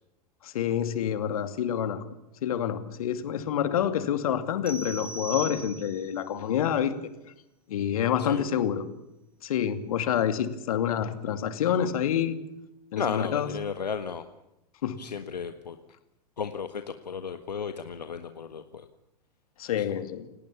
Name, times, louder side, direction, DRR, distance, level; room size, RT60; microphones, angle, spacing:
voice 1, 0.4-2.0 2.4-7.0 7.7-8.8 9.4-12.4 12.9-13.5 14.8-15.0 19.6-20.3, left 9 dB, 55° left, 11 dB, 2.6 m, -27 dB
sound 1, 4.7-6.2, right 3 dB, 5° right, 3.3 m, -39 dB
voice 2, 13.0-14.2 15.0-15.8 16.4-18.9 19.8-19.9, left 6 dB, 75° left, 9 dB, 1.6 m, -34 dB
29.5 x 18.5 x 7.2 m, 0.89 s
figure-of-eight pair, 95°, 21 cm